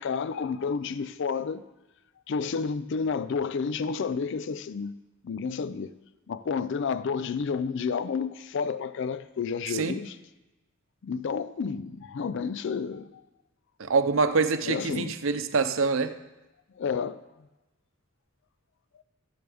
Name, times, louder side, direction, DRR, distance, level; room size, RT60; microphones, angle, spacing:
voice 1, 0.0-1.6 2.3-5.0 5.2-5.9 6.3-10.2 11.0-13.2 14.6-15.1 16.8-17.2, left 5 dB, 60° left, 0.4 m, -30 dB
voice 2, 13.8-16.1, right 4 dB, 70° right, 0.7 m, -25 dB
13.5 x 10.5 x 3.5 m
head